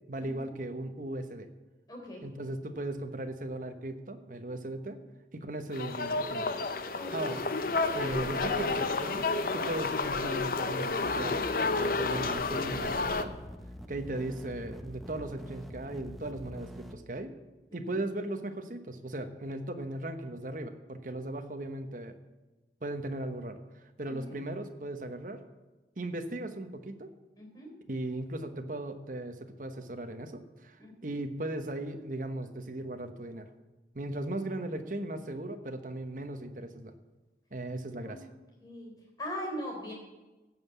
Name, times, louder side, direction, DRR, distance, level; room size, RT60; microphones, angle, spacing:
voice 1, 0.1-1.5 2.2-5.0 5.3-6.5 7.1-7.6 7.9-9.2 9.5-11.5 11.7-13.3 13.9-17.3 17.7-22.2 22.8-25.4 26.0-27.1 27.9-33.5 33.9-36.9 37.5-38.3, right 1 dB, 50° right, 7 dB, 1.0 m, -37 dB
voice 2, 1.9-2.2 6.9-7.1 17.7-17.8 24.1-24.4 27.4-27.7 30.8-31.1 38.1-38.4 38.6-38.9 39.2-39.9, equal, 20° left, 0 dB, 3.7 m, -40 dB
sound 1, 5.7-13.2, left 3 dB, 50° left, 0.7 m, -31 dB
sound 2, 11.0-16.9, equal, ahead, 0.7 m, -45 dB
15.5 x 5.6 x 8.3 m, 1.1 s
head